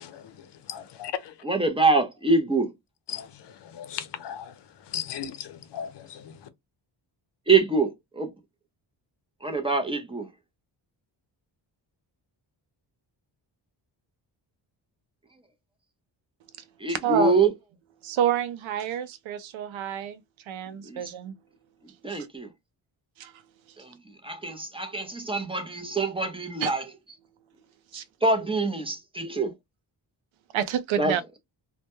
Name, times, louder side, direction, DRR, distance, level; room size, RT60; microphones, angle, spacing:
voice 1, 0.0-1.4 3.1-6.5, left 9 dB, 60° left, 0.6 m, -37 dB
voice 2, 1.4-2.7 7.5-8.3 9.4-10.3 16.8-17.5 20.8-21.0 22.0-22.5 23.8-23.9 24.2-26.8 27.9-29.5 31.0-31.1, right 3 dB, 10° right, 0.4 m, -25 dB
voice 3, 16.9-17.3 18.0-20.2 20.5-21.4 23.2-23.3 26.6-26.7 27.9-28.0 30.5-31.2, right 9 dB, 85° right, 0.5 m, -28 dB
2.1 x 2.1 x 2.9 m
cardioid pair, 100°, 46 cm